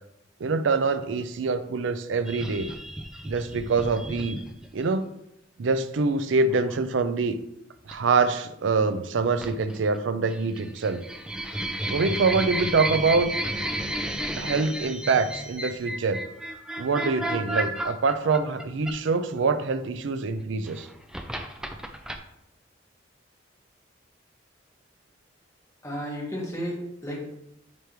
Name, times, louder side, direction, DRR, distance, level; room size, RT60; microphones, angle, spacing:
voice 1, 0.4-2.7 3.3-4.4 4.7-5.0 5.6-7.4 7.9-11.0 11.9-13.3 14.4-16.2 16.8-20.9, right 4 dB, 75° right, 11 dB, 0.4 m, -25 dB
sound 1, 2.3-4.9 6.5-6.8 7.9-8.2 9.4-10.0 10.3-19.4 20.4-22.2, right 1 dB, 5° right, 0.4 m, -32 dB
voice 2, 25.8-27.3, equal, 15° left, -4 dB, 1.6 m, -33 dB
9.4 x 3.4 x 3.1 m, 0.82 s
head